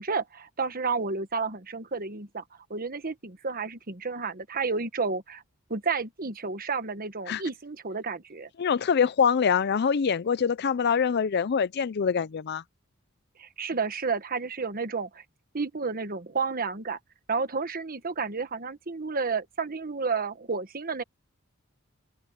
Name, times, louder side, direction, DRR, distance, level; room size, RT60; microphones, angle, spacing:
voice 1, 0.0-2.4 2.7-5.4 5.7-8.5 13.4-15.2 15.5-17.0 17.3-21.0, right 4 dB, 45° right, 1.3 m, -31 dB
voice 2, 8.6-12.6, left 6 dB, 55° left, 0.4 m, -24 dB
head